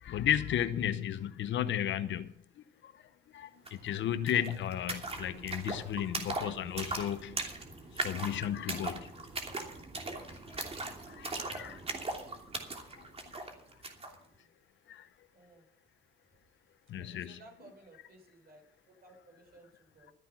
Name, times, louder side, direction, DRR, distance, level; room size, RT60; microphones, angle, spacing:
voice 1, 0.0-2.3 2.8-2.9 3.3-7.4 8.0-9.1 11.1-11.8 12.9-13.1 14.9-15.1 16.9-17.4, left 10 dB, 70° left, 0.9 m, -34 dB
sound 1, 3.7-3.8 4.0-14.2, right 2 dB, 30° right, 2.9 m, -39 dB
voice 2, 15.3-15.6 17.0-18.6 18.9-20.1, right 2 dB, 50° right, 7.1 m, -57 dB
14.0 x 10.0 x 5.9 m
cardioid pair, 90°, 20 cm